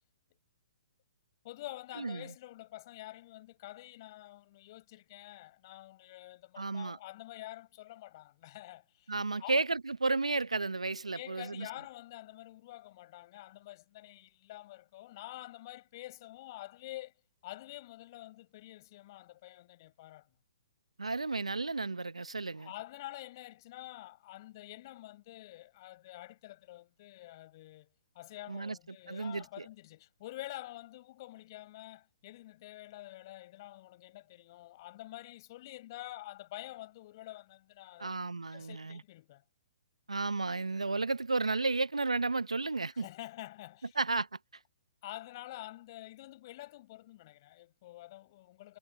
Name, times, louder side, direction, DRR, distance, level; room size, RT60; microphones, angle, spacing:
voice 1, 1.4-9.1 9.4-9.6 11.1-17.1 17.4-20.3 22.5-27.9 28.1-38.2 38.5-39.4 42.9-44.0 45.0-48.8, left 16 dB, 45° left, 5.0 m, -48 dB
voice 2, 6.6-7.0 9.1-11.7 21.0-22.7 28.5-28.8 29.1-29.6 38.0-39.0 40.1-43.1 44.0-44.3, right 3 dB, 90° right, 0.8 m, -33 dB
figure-of-eight pair, 130°, 3 cm